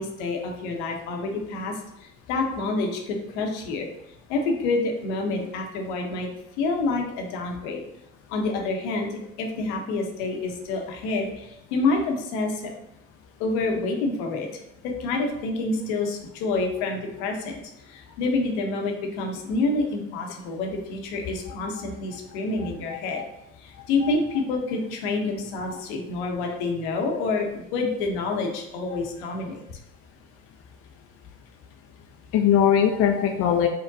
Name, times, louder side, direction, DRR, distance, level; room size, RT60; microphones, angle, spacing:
voice 1, 0.0-1.7 2.3-3.9 4.3-6.3 6.6-7.8 8.3-9.1 9.4-12.6 13.4-14.5 14.8-17.6 17.9-23.2 23.6-29.6, left 3 dB, 70° left, 2 dB, 0.8 m, -27 dB
voice 2, 22.9-23.2 24.0-24.1 32.3-33.7, left 9 dB, 40° left, 3 dB, 0.5 m, -21 dB
5.2 x 2.2 x 2.6 m, 0.84 s
hypercardioid pair, 65°, 36 cm